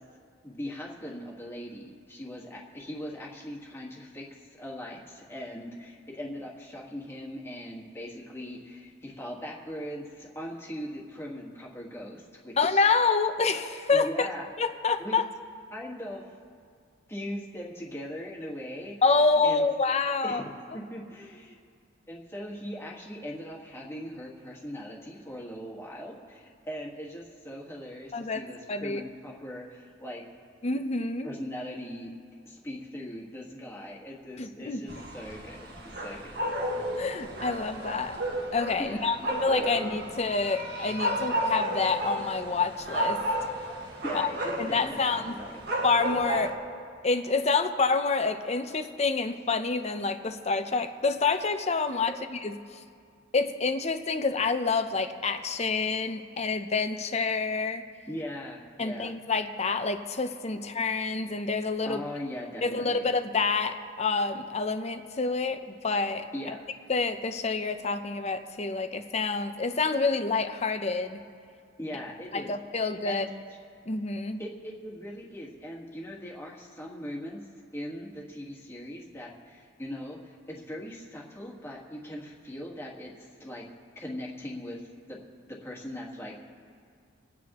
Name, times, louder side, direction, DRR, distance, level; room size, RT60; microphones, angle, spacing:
voice 1, 0.4-4.3 4.5-12.8 13.9-14.5 15.0-15.2 15.7-16.3 17.1-19.0 19.4-19.7 20.2-20.4 20.7-21.6 22.1-30.2 31.2-32.1 32.4-36.4 38.8-39.3 39.6-39.7 44.0-45.6 58.1-59.1 61.8-63.1 66.3-66.6 71.8-72.5 72.8-73.3 74.4-77.4 77.7-83.6 84.0-84.8 85.1-85.2 85.5-86.4, equal, 15° left, -3 dB, 1.7 m, -40 dB
voice 2, 12.6-14.3 14.6-15.3 19.0-20.4 28.1-28.4 28.7-29.0 30.6-31.3 34.4-34.8 37.0-38.2 38.5-43.2 44.1-44.3 44.6-45.3 45.8-46.6 47.0-52.5 53.3-57.8 58.8-62.0 62.6-66.6 66.9-71.2 72.3-73.3 73.9-74.4, left 4 dB, 35° left, 8 dB, 0.7 m, -27 dB
sound 1, 34.9-46.5, right 1 dB, 60° right, 1.7 m, -32 dB
28.0 x 9.4 x 3.1 m, 2.2 s
head